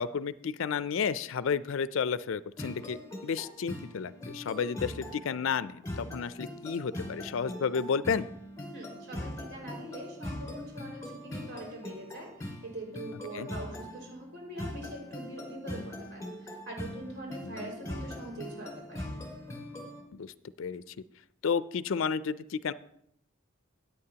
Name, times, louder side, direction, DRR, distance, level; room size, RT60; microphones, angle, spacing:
voice 1, 0.0-8.3 13.3-13.5 17.4-17.7 20.1-20.3 20.6-20.8 21.4-22.7, left 6 dB, 70° left, 16 dB, 0.4 m, -32 dB
sound 1, 2.6-20.0, left 1 dB, 15° left, 2.2 m, -41 dB
voice 2, 8.7-19.0, right 1 dB, 55° right, -2 dB, 5.0 m, -43 dB
16.5 x 9.3 x 2.9 m, 0.73 s
head